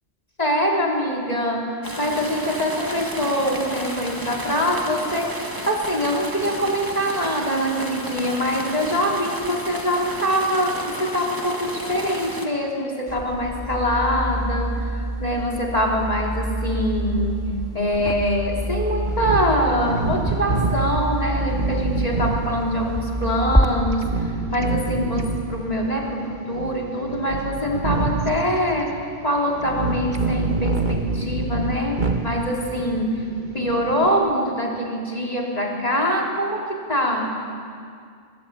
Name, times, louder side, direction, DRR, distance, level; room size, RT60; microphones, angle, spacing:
voice 1, 0.4-14.9 15.2-33.3 33.5-37.4, equal, 35° left, -2 dB, 4.4 m, -24 dB
sound 1, 1.8-12.5, right 1 dB, 20° right, 2.3 m, -33 dB
sound 2, 13.1-23.7, equal, 5° left, 2.0 m, -27 dB
sound 3, 19.1-34.1, right 3 dB, 45° right, 1.8 m, -27 dB
25.0 x 24.0 x 9.2 m, 2.2 s
omnidirectional pair, 1.1 m